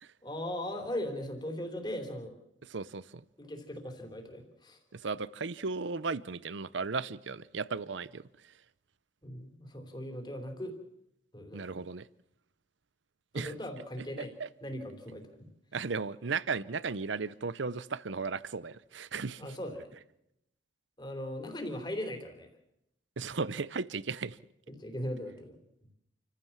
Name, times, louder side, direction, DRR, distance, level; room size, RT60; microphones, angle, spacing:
voice 1, 0.2-2.3 3.4-4.8 9.2-10.7 11.3-11.9 13.3-14.3 14.6-15.5 19.4-19.9 21.0-22.5 24.8-25.6, left 1 dB, 20° left, 5 dB, 3.6 m, -39 dB
voice 2, 2.7-3.2 4.9-8.2 11.5-12.1 13.3-13.5 14.2-14.5 15.7-19.5 23.2-24.4, right 4 dB, 75° right, 18 dB, 0.7 m, -35 dB
29.0 x 15.0 x 7.4 m, 0.81 s
head